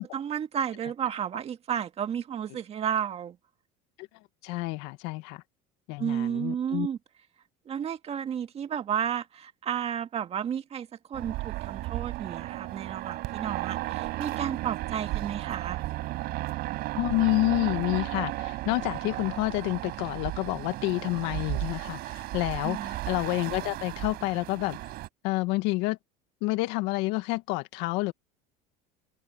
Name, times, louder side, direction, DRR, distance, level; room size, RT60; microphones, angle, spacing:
voice 1, 0.0-3.4 6.0-7.0 7.7-15.8 22.6-23.0, right 8 dB, 35° right, 1.9 m, -32 dB
voice 2, 4.4-5.4 5.9-6.9 16.9-24.8 25.2-26.0 26.4-28.1, left 21 dB, 75° left, 1.8 m, -29 dB
sound 1, 11.1-25.1, right 17 dB, 60° right, 5.6 m, -34 dB
open air
cardioid pair, 130°, 18 cm